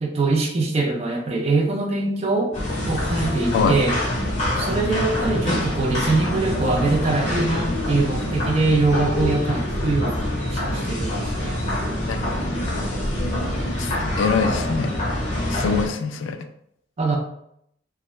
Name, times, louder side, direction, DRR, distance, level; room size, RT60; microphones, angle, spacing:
voice 1, 0.0-2.6 2.9-4.0 4.6-11.6 17.0-17.2, right 3 dB, 35° right, 2 dB, 0.4 m, -23 dB
sound 1, 2.5-15.9, left 1 dB, 40° left, 0.8 m, -25 dB
voice 2, 13.8-14.9 15.5-16.4, left 5 dB, 90° left, 7 dB, 0.3 m, -24 dB
2.3 x 2.2 x 3.0 m, 0.73 s
head